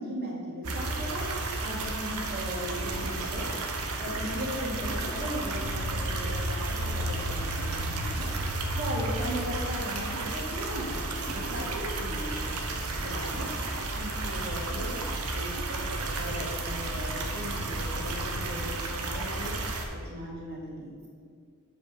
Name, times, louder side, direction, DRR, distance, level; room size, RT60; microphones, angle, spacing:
voice 1, 0.0-3.5 4.0-8.3 8.8-12.5 13.0-13.5 13.9-15.0 15.3-19.5 19.9-21.1, equal, 45° right, -4 dB, 2.0 m, -37 dB
sound 1, 0.6-19.9, right 2 dB, 90° right, 0.8 m, -32 dB
7.8 x 4.9 x 5.1 m, 2.1 s
head